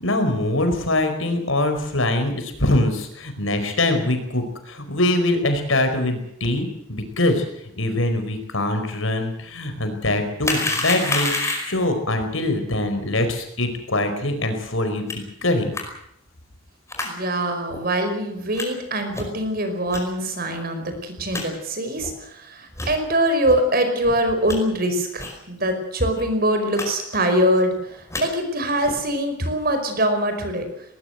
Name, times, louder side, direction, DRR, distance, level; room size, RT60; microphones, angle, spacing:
voice 1, 0.0-7.4 7.7-11.3 11.6-15.7, left 1 dB, 75° left, 7 dB, 4.9 m, -23 dB
sound 1, 10.4-11.9 15.1-15.2 15.7-15.8 16.9-17.1 17.7-17.8 18.5-18.7 19.1-19.4 19.9-20.0 20.6-20.7 20.9-21.0 21.3-21.4 22.0-22.1 22.7-22.9 23.4-23.6 24.0-24.6 25.2-25.4 25.7-25.8 26.0-26.2 26.7-26.9 27.1-27.5 27.9-28.2 28.8-29.1, left 2 dB, 15° left, 5.1 m, -28 dB
voice 2, 17.0-30.7, right 1 dB, 45° right, 7 dB, 5.1 m, -23 dB
20.0 x 20.0 x 8.1 m, 0.75 s
head